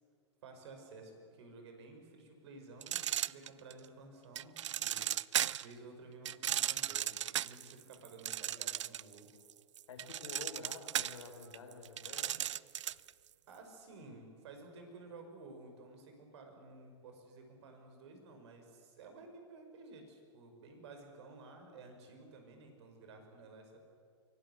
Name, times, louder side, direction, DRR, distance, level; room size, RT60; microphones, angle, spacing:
voice 1, 0.4-4.5 4.8-5.1 5.6-9.3 13.5-23.8, right 3 dB, 65° right, 5 dB, 5.5 m, -53 dB
sound 1, 2.8-3.8 4.4-5.7 6.2-9.2 9.5-13.1, right 11 dB, 85° right, 0.5 m, -36 dB
voice 2, 9.9-12.4, left 4 dB, 85° left, 4 dB, 4.6 m, -49 dB
24.5 x 18.0 x 8.1 m, 2.2 s
hypercardioid pair, 125°, 15 cm